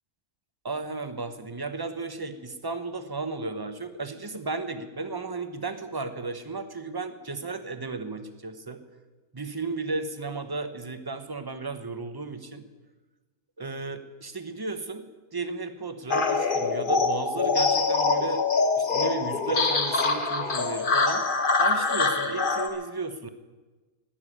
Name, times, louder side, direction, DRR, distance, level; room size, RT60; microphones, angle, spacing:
voice 1, 0.6-8.8 9.3-12.6 13.6-15.1 15.3-18.4 18.8-21.3 21.6-23.3, right 3 dB, 20° right, 9 dB, 0.9 m, -34 dB
sound 1, 16.1-22.7, left 4 dB, 40° left, 1.3 m, -24 dB
17.5 x 7.2 x 10.0 m, 1.3 s
omnidirectional pair, 1.3 m